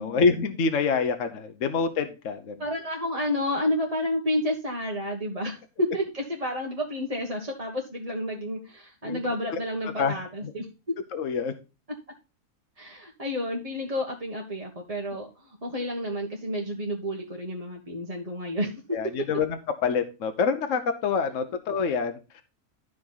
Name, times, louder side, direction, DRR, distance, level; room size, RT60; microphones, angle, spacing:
voice 1, 0.0-2.5 9.0-9.2 10.0-10.1 10.4-10.5 11.1-11.5 18.9-22.4, left 5 dB, 60° left, 1.3 m, -26 dB
voice 2, 2.6-10.9 12.8-18.8, left 1 dB, 25° right, 1.4 m, -30 dB
12.5 x 5.2 x 3.9 m
omnidirectional pair, 1.5 m